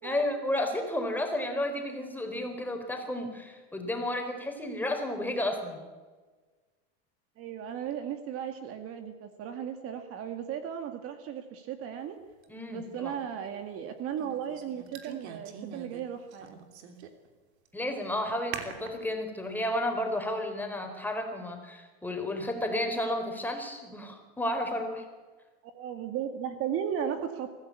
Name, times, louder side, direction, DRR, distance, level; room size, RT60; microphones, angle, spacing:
voice 1, 0.0-5.8 12.5-13.1 17.7-25.0, left 1 dB, 5° left, 4 dB, 4.2 m, -32 dB
voice 2, 7.4-12.2 12.7-16.6 25.7-27.5, right 9 dB, 45° right, 7 dB, 2.0 m, -36 dB
sound 1, 12.4-12.5 14.2-16.0 16.3-17.3 17.7-17.8 18.5-19.1, right 7 dB, 80° right, 3.2 m, -42 dB
23.5 x 15.0 x 8.5 m, 1.3 s
supercardioid pair, 125°, 33 cm